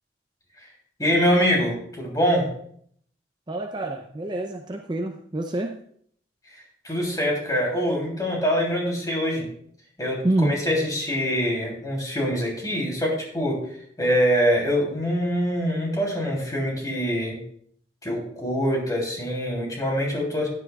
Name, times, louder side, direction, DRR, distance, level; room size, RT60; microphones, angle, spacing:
voice 1, 1.0-2.5 6.5-9.5 10.0-13.6 14.0-17.4 18.0-20.5, equal, 20° left, -1 dB, 3.2 m, -24 dB
voice 2, 3.5-5.7 10.2-10.5, right 1 dB, 25° right, 3 dB, 0.6 m, -26 dB
14.0 x 9.9 x 2.4 m, 0.64 s
head